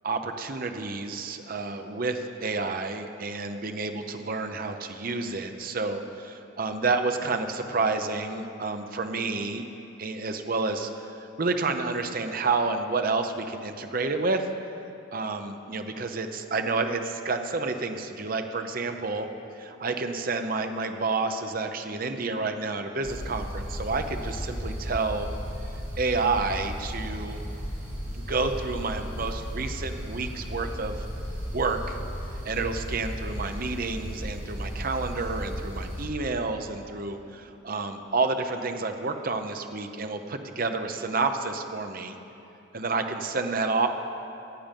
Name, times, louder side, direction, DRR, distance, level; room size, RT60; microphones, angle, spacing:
voice 1, 0.0-9.7 10.0-14.5 15.1-19.3 19.6-25.3 26.0-27.4 28.1-31.1 31.5-32.0 32.4-42.1 42.7-43.9, right 3 dB, 45° right, 6 dB, 0.7 m, -29 dB
sound 1, 23.0-36.0, equal, 25° right, 3.1 m, -35 dB
14.5 x 8.6 x 5.3 m, 2.9 s
head